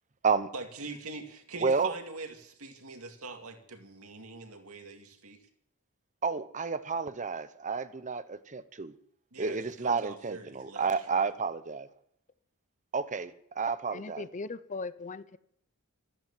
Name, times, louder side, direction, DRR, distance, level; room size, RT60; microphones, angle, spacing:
voice 1, 0.5-5.4 9.3-11.3, right 3 dB, 75° right, 4 dB, 2.4 m, -43 dB
voice 2, 1.6-1.9 6.2-8.9 9.4-11.9 12.9-14.3, right 5 dB, 35° right, 14 dB, 0.8 m, -31 dB
voice 3, 13.9-15.4, left 3 dB, 35° left, 15 dB, 0.7 m, -39 dB
14.0 x 13.5 x 7.3 m, 0.70 s
head